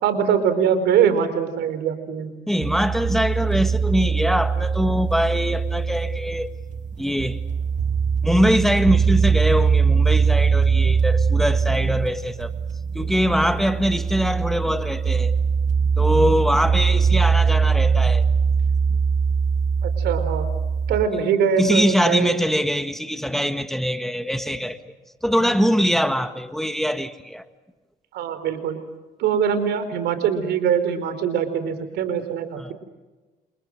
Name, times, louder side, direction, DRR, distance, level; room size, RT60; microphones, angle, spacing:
voice 1, 0.0-2.3 19.8-20.5 20.9-22.3 28.1-28.8 29.2-32.7, right 7 dB, 80° right, 4.3 m, -22 dB
voice 2, 2.5-6.5 7.0-7.4 8.2-12.5 12.9-15.3 16.0-18.2 21.6-24.8 25.2-27.4 32.6-32.7, equal, ahead, 1.6 m, -22 dB
sound 1, 2.6-21.1, right 5 dB, 45° right, 1.3 m, -21 dB
30.0 x 27.5 x 6.4 m
cardioid pair, 110°, 17 cm